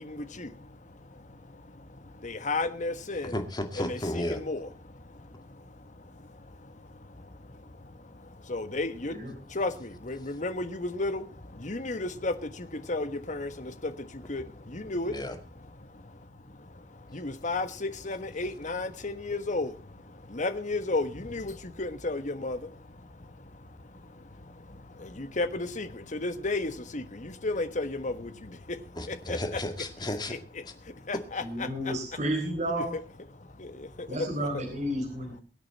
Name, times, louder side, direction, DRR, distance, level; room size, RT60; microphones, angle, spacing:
voice 1, 2.2-3.3 3.9-4.7 8.5-9.1 9.6-9.7 10.1-11.2 11.6-12.3 12.9-13.5 14.3-14.4 14.7-15.1 17.1-19.7 20.4-21.5 21.8-22.6 25.4-25.9 26.1-27.0 27.4-28.1 29.3-29.4 31.1-31.4, left 2 dB, 45° left, 11 dB, 1.3 m, -31 dB
voice 2, 3.3-4.4 15.1-15.4 29.0-30.4, left 1 dB, 25° left, 7 dB, 2.1 m, -33 dB
voice 3, 31.4-33.0 34.1-35.4, right 1 dB, 45° right, 1 dB, 4.3 m, -31 dB
23.5 x 8.9 x 4.2 m, 0.34 s
head